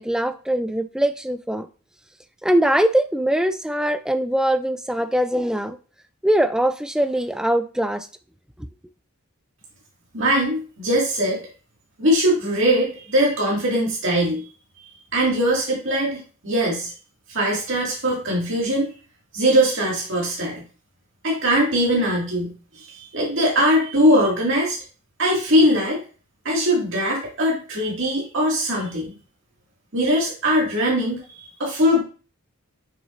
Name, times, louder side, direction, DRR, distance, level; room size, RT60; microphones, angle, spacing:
voice 1, 0.0-1.7 2.4-5.8 6.2-8.1, right 1 dB, 5° right, 0.3 m, -22 dB
voice 2, 10.1-11.4 12.0-14.5 15.1-16.9 17.3-19.0 19.3-20.6 21.2-24.8 25.2-26.0 26.4-29.1 29.9-32.0, equal, 60° right, 2.1 m, -21 dB
7.2 x 5.8 x 2.5 m
head